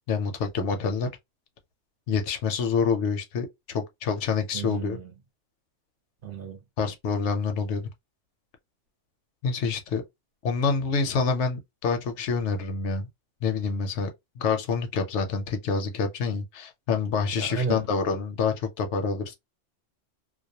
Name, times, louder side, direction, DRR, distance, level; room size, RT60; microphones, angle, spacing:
voice 1, 0.1-1.1 2.1-5.0 6.8-7.9 9.4-10.0 10.4-13.1 13.4-14.1 14.4-19.4, left 5 dB, 75° left, 0.9 m, -27 dB
voice 2, 4.5-5.1 6.2-6.6 17.4-17.8, right 5 dB, 55° right, 0.7 m, -32 dB
2.3 x 2.1 x 2.7 m
omnidirectional pair, 1.3 m